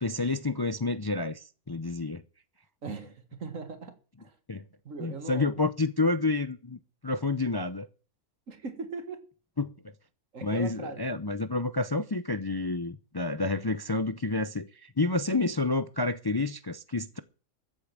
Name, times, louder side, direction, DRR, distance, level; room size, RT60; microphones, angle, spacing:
voice 1, 0.0-2.2 4.5-4.6 5.0-7.9 9.6-9.7 10.4-17.2, left 3 dB, 25° left, 0.5 m, -29 dB
voice 2, 2.8-4.4 4.8-5.6 8.5-9.2 10.3-11.0, right 4 dB, 75° right, 2.2 m, -40 dB
14.0 x 8.6 x 7.6 m
omnidirectional pair, 1.4 m